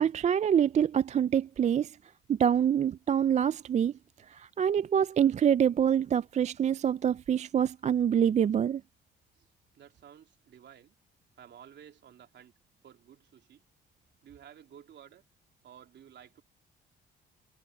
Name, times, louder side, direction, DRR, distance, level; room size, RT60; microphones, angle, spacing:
voice 1, 0.0-1.9 2.3-3.9 4.3-8.8, right 9 dB, 35° right, 0.4 m, -26 dB
voice 2, 9.7-10.9 11.4-12.5 12.8-13.6 14.2-15.2 15.6-16.4, right 9 dB, 65° right, 3.1 m, -53 dB
cardioid pair, 90°, 20 cm